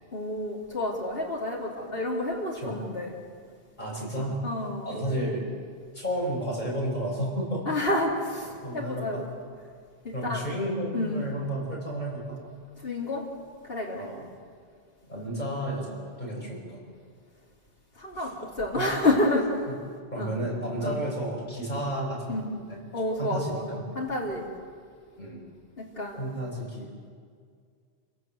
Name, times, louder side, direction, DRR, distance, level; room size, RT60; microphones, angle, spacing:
voice 1, 0.1-3.1 4.4-4.9 7.7-9.2 10.0-10.4 10.9-11.3 12.8-13.2 13.7-14.1 18.0-19.7 20.2-20.3 20.8-21.0 22.3-22.4 22.9-23.7 24.0-24.5 25.8-26.3, left 1 dB, 60° left, -4 dB, 3.5 m, -29 dB
voice 2, 3.8-4.4 4.8-5.4 5.9-7.6 8.6-9.2 10.1-12.4 13.9-14.2 15.1-16.8 18.2-18.3 18.8-18.9 19.7-19.8 20.1-22.8 23.2-23.8 25.2-25.4 26.2-27.0, right 1 dB, 45° left, -3 dB, 7.5 m, -32 dB
29.5 x 17.0 x 8.0 m, 2.1 s
omnidirectional pair, 1.1 m